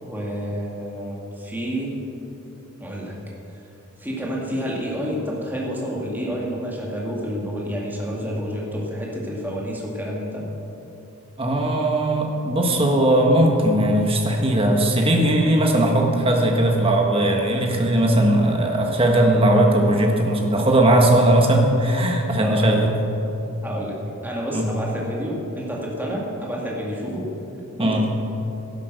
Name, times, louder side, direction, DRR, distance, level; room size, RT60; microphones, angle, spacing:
voice 1, 0.0-1.9 2.8-3.2 4.0-10.5 22.4-22.8 23.6-24.0 24.2-27.3 27.8-28.1, equal, 10° right, -4 dB, 2.3 m, -29 dB
voice 2, 11.4-22.9 24.5-24.7 27.8-28.0, right 1 dB, 25° right, 1 dB, 1.6 m, -18 dB
12.0 x 11.0 x 6.8 m, 2.9 s
head